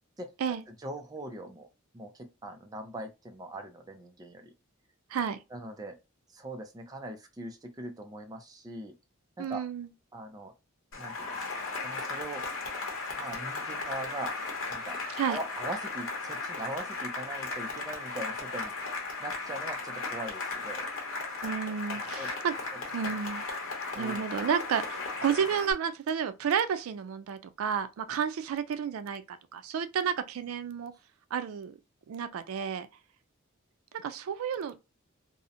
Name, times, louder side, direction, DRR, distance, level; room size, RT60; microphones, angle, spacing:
voice 1, 0.7-1.7 1.9-4.5 5.5-6.0 6.3-8.9 9.4-9.6 10.1-10.5 11.0-11.4 11.8-12.4 13.2-14.4 14.7-15.0 15.3-18.7 19.2-20.9 21.9-22.3 22.7-22.8 23.1-23.2 24.0-24.4, right 1 dB, 20° right, 0.4 m, -41 dB
voice 2, 9.4-9.9 15.2-15.4 21.4-22.5 22.9-23.5 23.9-30.9 31.3-31.8 32.1-32.9 33.9-34.8, right 7 dB, 85° right, 0.3 m, -31 dB
Cheering / Applause, 10.9-25.7, left 3 dB, 75° left, 0.8 m, -36 dB
2.7 x 2.0 x 2.5 m
head